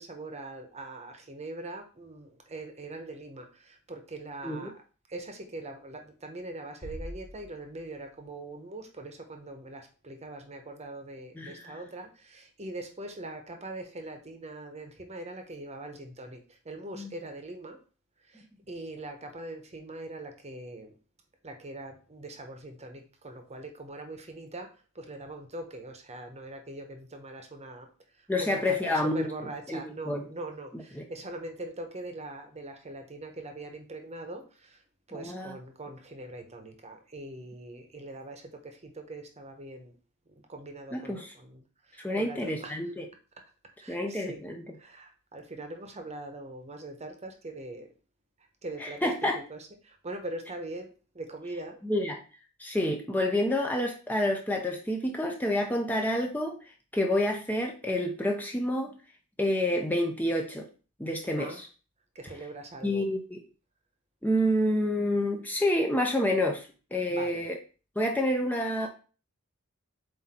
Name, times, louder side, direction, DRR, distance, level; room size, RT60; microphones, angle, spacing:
voice 1, 0.0-4.8 5.1-17.8 18.2-21.0 21.4-27.9 28.2-34.8 35.1-40.0 40.3-42.8 43.8-44.4 44.8-47.9 48.6-51.8 61.4-61.6 62.1-63.1 67.1-67.5, right 2 dB, 30° right, 5 dB, 1.0 m, -42 dB
Bass drum, 6.8-8.2, equal, 40° left, 1.5 m, -43 dB
voice 2, 28.3-29.3 29.7-29.8 30.1-30.2 30.9-31.0 35.1-35.5 40.9-41.3 42.0-43.0 43.9-44.6 49.0-49.4 51.8-52.2 52.6-56.6 56.9-58.9 59.4-60.7 61.0-61.7 62.8-63.4 64.2-67.6 68.0-68.9, left 1 dB, 10° left, 2 dB, 0.7 m, -28 dB
7.9 x 2.8 x 4.3 m, 0.36 s
head